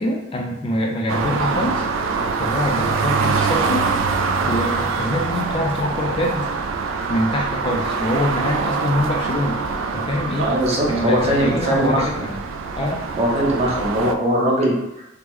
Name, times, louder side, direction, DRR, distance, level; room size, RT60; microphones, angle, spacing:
voice 1, 0.0-1.8 2.4-3.9 4.4-6.5 7.1-9.6 9.9-10.5 10.9-12.4 12.8-13.1, left 1 dB, 30° left, 0 dB, 0.3 m, -24 dB
sound 1, 1.1-14.1, right 4 dB, 80° right, 0.3 m, -24 dB
voice 2, 10.4-12.2 13.2-15.2, right 1 dB, 35° right, -3 dB, 0.7 m, -21 dB
3.5 x 2.0 x 3.0 m, 0.90 s
head